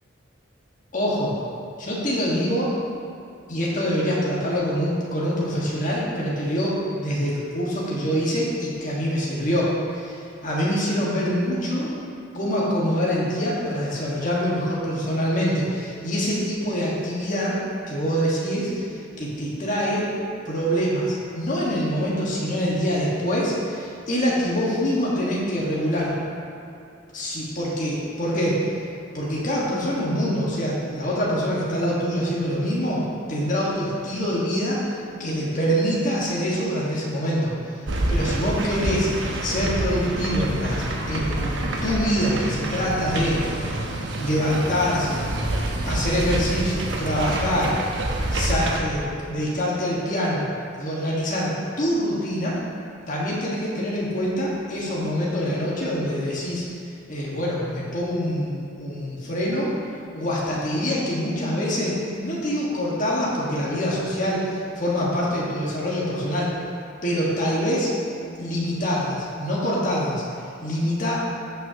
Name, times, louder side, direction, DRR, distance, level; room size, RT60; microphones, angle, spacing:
voice 1, 0.9-1.3 1.8-2.7 3.5-11.9 12.3-17.6 17.9-20.1 20.4-26.1 27.1-28.7 29.1-33.0 33.3-37.5 38.1-39.1 39.4-41.5 41.8-43.7 44.2-45.2 45.8-47.8 48.3-50.5 50.8-52.6 53.1-56.6 57.1-59.7 60.1-66.5 67.0-67.9 68.4-70.2 70.6-71.1, equal, 40° left, -6 dB, 1.6 m, -25 dB
sound 1, 37.9-48.8, right 1 dB, 65° right, 0.9 m, -27 dB
15.5 x 5.9 x 2.9 m, 2.6 s
head